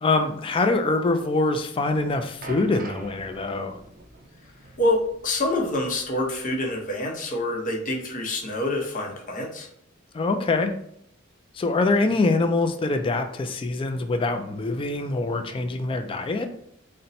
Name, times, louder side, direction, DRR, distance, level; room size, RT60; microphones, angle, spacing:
voice 1, 0.0-3.8 10.1-10.7 11.5-16.5, left 3 dB, 25° left, 6 dB, 0.3 m, -24 dB
sound 1, 2.4-6.7 6.9-7.1 7.9-8.0, right 3 dB, 45° right, 0.6 m, -44 dB
voice 2, 4.8-9.7, left 1 dB, 40° left, 0 dB, 0.7 m, -26 dB
4.1 x 2.1 x 4.0 m, 0.68 s
head